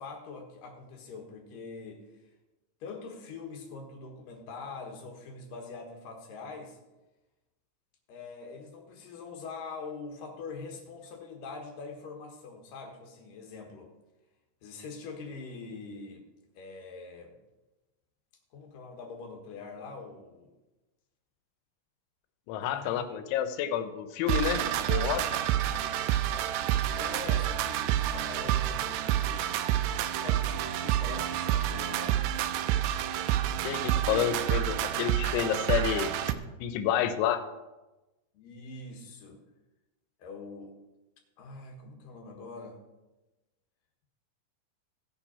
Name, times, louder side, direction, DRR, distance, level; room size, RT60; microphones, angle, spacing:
voice 1, 0.0-2.0 2.8-6.8 8.1-13.9 14.6-16.3 16.6-17.3 18.5-20.5 22.6-23.1 26.9-29.5 30.0-32.2 38.3-39.4 40.2-40.8 41.4-42.8, left 4 dB, 60° left, 1 dB, 2.5 m, -43 dB
voice 2, 22.5-24.6 24.9-25.2 33.6-36.1 36.6-37.4, left 10 dB, 80° left, 9 dB, 3.1 m, -29 dB
sound 1, 24.3-36.3, right 12 dB, 85° right, 2.4 m, -28 dB
17.5 x 5.8 x 4.2 m, 1.1 s
omnidirectional pair, 5.5 m